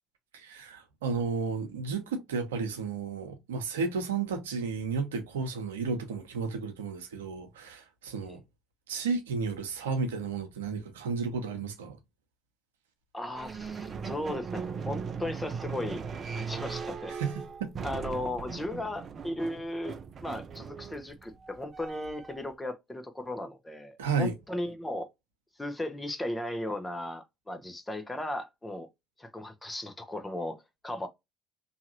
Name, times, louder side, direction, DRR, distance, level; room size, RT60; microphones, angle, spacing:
voice 1, 0.3-8.4 8.9-12.0 17.1-17.7 24.0-24.3, right 5 dB, 90° right, 0.8 m, -33 dB
voice 2, 13.1-16.0 16.3-17.1 17.8-25.1 25.6-28.9 29.2-31.1, left 1 dB, 15° left, 0.9 m, -36 dB
sound 1, 13.4-22.4, right 6 dB, 40° right, 0.5 m, -39 dB
2.8 x 2.5 x 2.9 m
hypercardioid pair, 70°, 0 cm